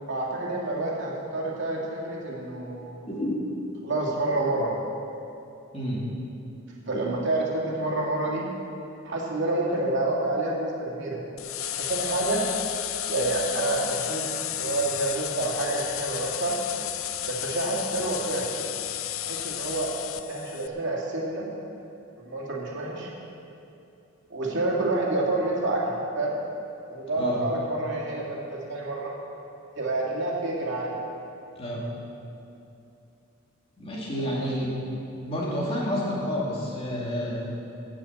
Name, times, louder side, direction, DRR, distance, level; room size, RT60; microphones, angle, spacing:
voice 1, 0.1-3.0 3.8-4.7 6.9-8.5 9.1-11.2 11.7-12.4 13.1-16.6 17.2-18.5 19.2-19.9 20.3-21.4 22.2-23.1 24.3-26.3 26.9-28.4 28.7-29.1 29.7-30.9 34.2-34.7, right 2 dB, 55° right, -4 dB, 2.7 m, -28 dB
voice 2, 3.1-3.4 5.7-6.0 27.1-27.4 31.6-31.9 33.8-34.7 35.2-37.5, equal, 25° left, -6 dB, 2.7 m, -29 dB
sound 1, 11.4-20.7, left 11 dB, 65° left, 0.5 m, -32 dB
17.5 x 6.4 x 7.4 m, 2.8 s
head